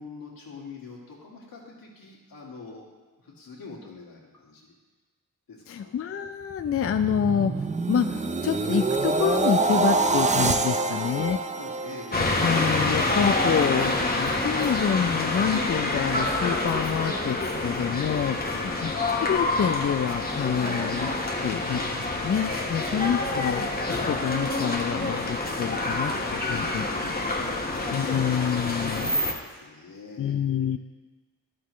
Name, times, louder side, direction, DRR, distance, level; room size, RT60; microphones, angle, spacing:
voice 1, 0.0-2.9 3.2-4.7 5.5-5.9 10.7-12.3 18.5-19.0 22.7-23.2 26.5-27.2 27.5-30.4, left 3 dB, 75° left, -2 dB, 1.9 m, -44 dB
voice 2, 5.7-11.4 12.4-18.4 18.8-18.9 19.2-21.1 21.4-21.8 22.2-23.8 24.0-26.8 27.9-29.1 30.2-30.8, left 8 dB, 45° left, 8 dB, 0.4 m, -27 dB
sound 1, 6.5-12.8 13.2-13.5, right 3 dB, 20° right, 0.5 m, -26 dB
sound 2, 12.1-29.3, left 2 dB, 25° left, 1.2 m, -27 dB
11.5 x 6.1 x 3.1 m, 1.3 s
cardioid pair, 65°, 35 cm